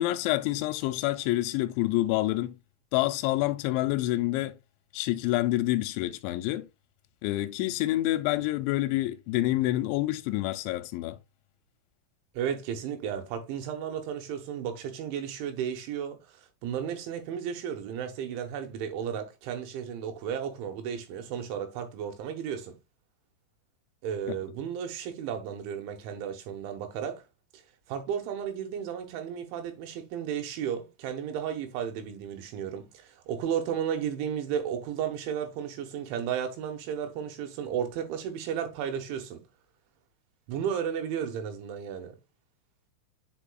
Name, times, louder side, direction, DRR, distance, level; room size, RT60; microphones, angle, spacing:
voice 1, 0.0-2.5 2.9-4.6 4.9-6.7 7.2-11.2 24.3-24.4, left 16 dB, 90° left, 2.9 m, -27 dB
voice 2, 12.4-22.8 24.0-27.2 27.9-39.4 40.5-42.2, right 8 dB, 90° right, 3.6 m, -34 dB
8.8 x 5.4 x 2.3 m
omnidirectional pair, 5.2 m